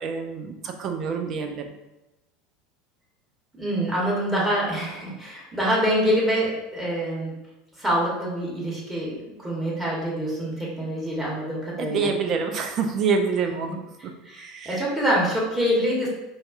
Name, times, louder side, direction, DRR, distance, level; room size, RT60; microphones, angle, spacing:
voice 1, 0.0-1.6 11.8-13.8 14.4-14.7, right 5 dB, 40° right, 5 dB, 0.4 m, -26 dB
voice 2, 3.5-7.3 7.8-12.1 14.0-16.1, equal, 15° right, -5 dB, 1.2 m, -25 dB
4.0 x 2.3 x 2.4 m, 0.98 s
figure-of-eight pair, 75°, 0 cm